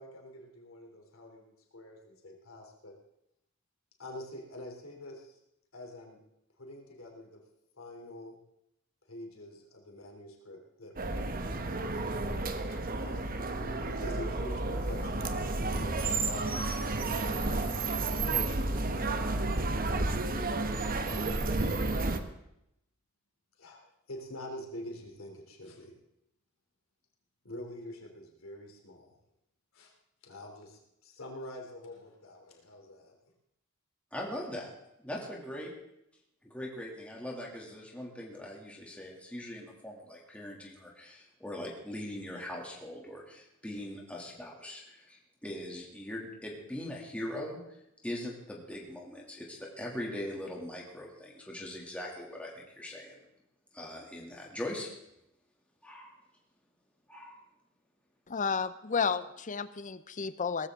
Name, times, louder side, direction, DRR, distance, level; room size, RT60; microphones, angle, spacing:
voice 1, 0.0-3.0 4.0-5.4 5.7-6.2 6.6-7.4 7.8-8.4 9.1-11.5 12.7-17.9 18.5-19.3 21.0-21.6 23.6-26.0 27.4-29.2 29.7-29.9 30.2-33.2, left 1 dB, 75° left, 1 dB, 3.2 m, -46 dB
sound 1, 11.0-22.2, right 2 dB, 45° right, 1.1 m, -31 dB
voice 2, 34.1-34.7 35.0-35.7 36.4-53.2 53.7-54.9 55.8-56.2 57.1-57.4, left 1 dB, 5° left, -3 dB, 2.6 m, -41 dB
voice 3, 58.3-60.7, left 5 dB, 40° left, 14 dB, 0.7 m, -32 dB
18.5 x 14.5 x 3.7 m, 0.82 s
head